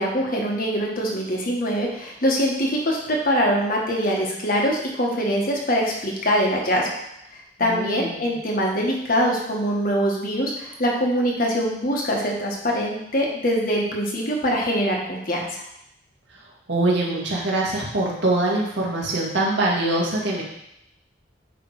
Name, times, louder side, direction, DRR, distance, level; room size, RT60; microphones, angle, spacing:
voice 1, 0.0-6.9 7.6-15.6, equal, 50° left, -1 dB, 1.6 m, -23 dB
voice 2, 7.6-8.3 16.7-20.4, right 2 dB, 75° right, -3 dB, 2.0 m, -23 dB
9.3 x 3.5 x 4.9 m, 0.81 s
head